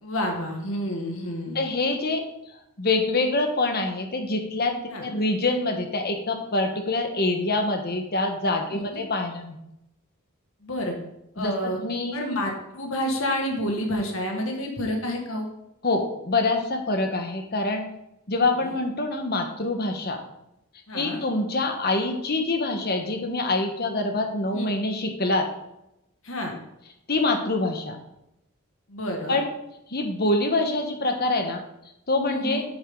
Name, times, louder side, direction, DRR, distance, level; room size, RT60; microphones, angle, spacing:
voice 1, 0.0-1.6 4.9-5.0 8.7-8.8 10.6-10.9 11.4-11.8 12.1-15.5 18.6-18.8 20.9-21.2 24.5-24.8 26.2-26.5 28.9-29.4 32.3-32.6, equal, 70° left, 2 dB, 1.9 m, -29 dB
voice 2, 1.5-2.2 2.8-9.6 11.4-12.2 15.8-17.8 18.3-20.2 20.9-25.5 27.1-28.0 29.3-29.5 29.9-31.6 32.1-32.6, left 2 dB, 45° left, 5 dB, 1.3 m, -25 dB
9.0 x 8.0 x 3.9 m, 0.84 s
head